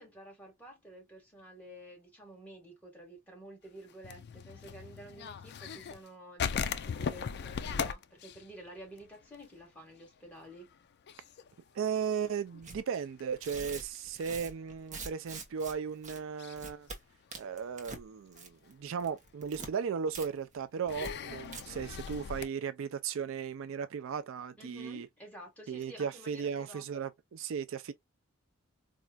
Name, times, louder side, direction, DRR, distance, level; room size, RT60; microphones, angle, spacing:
voice 1, 0.0-10.7 24.6-27.0, equal, 5° left, 1.8 m, -51 dB
sound 1, 3.9-6.1 6.4-9.6 9.9-10.0 10.4-10.7 11.1-14.5 15.2-15.3 16.4-16.6 17.1-17.8 18.3-18.4 19.8-19.9 20.9-22.5, left 6 dB, 55° left, 0.4 m, -38 dB
voice 2, 11.7-16.9 17.4-25.1 25.7-27.9, right 6 dB, 70° right, 0.4 m, -36 dB
Tearing, 12.6-12.8 13.3-15.7 16.0-16.2 16.5-17.0 17.3-18.0 18.3-18.7 19.0-19.7 20.1-20.3 20.5-20.6 21.0-21.1 21.4-21.6, right 3 dB, 35° right, 0.9 m, -44 dB
4.3 x 2.5 x 2.3 m
head